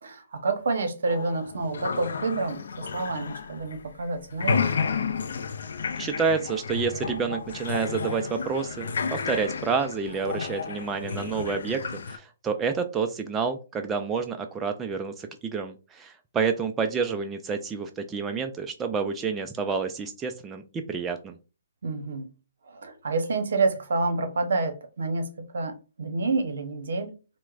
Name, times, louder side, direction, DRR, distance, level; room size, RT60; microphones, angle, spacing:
voice 1, 0.0-4.9 21.8-22.3 22.7-27.1, right 3 dB, 75° right, 0.8 m, -28 dB
sound 1, 1.1-4.0 4.3-12.2, left 6 dB, 70° left, 0.4 m, -32 dB
voice 2, 6.0-21.3, right 5 dB, 15° right, 0.3 m, -29 dB
4.4 x 2.1 x 2.4 m
hypercardioid pair, 150°, 0 cm